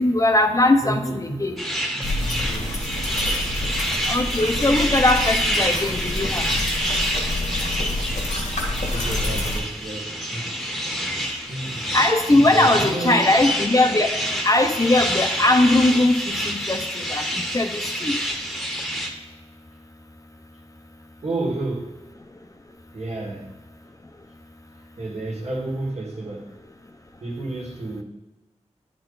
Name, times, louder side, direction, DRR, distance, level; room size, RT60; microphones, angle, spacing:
voice 1, 0.0-1.6 4.1-6.5 11.9-14.1 14.4-17.3 17.5-18.1, left 2 dB, 30° left, 0.7 m, -20 dB
voice 2, 0.8-1.4 1.7-2.1 2.5-2.9 8.9-10.6 11.5-11.8 12.3-13.3 21.2-22.1 22.9-23.5 24.8-26.5 27.2-28.0, right 2 dB, 65° right, 1.7 m, -31 dB
sound 1, 1.6-19.1, equal, ahead, 1.1 m, -27 dB
sound 2, 2.0-9.6, left 1 dB, 90° left, 1.8 m, -28 dB
10.0 x 4.4 x 3.9 m
wide cardioid pair, 90°, 12 cm